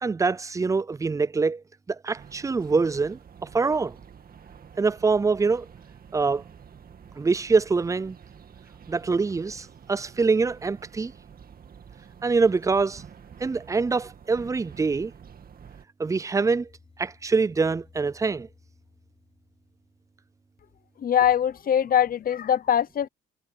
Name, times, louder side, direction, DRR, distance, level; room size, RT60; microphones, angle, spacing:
voice 1, 0.0-1.6 1.9-4.0 4.8-5.7 6.1-6.4 7.2-8.2 8.9-11.1 12.2-13.0 13.4-15.1 16.0-16.7 17.0-18.5, right 4 dB, 15° right, 0.4 m, -24 dB
sound 1, 2.2-15.9, right 7 dB, 50° right, 2.0 m, -49 dB
sound 2, 16.4-20.5, left 4 dB, 30° left, 5.5 m, -58 dB
voice 2, 21.0-23.1, left 9 dB, 45° left, 0.8 m, -22 dB
cardioid pair, 90°, 20 cm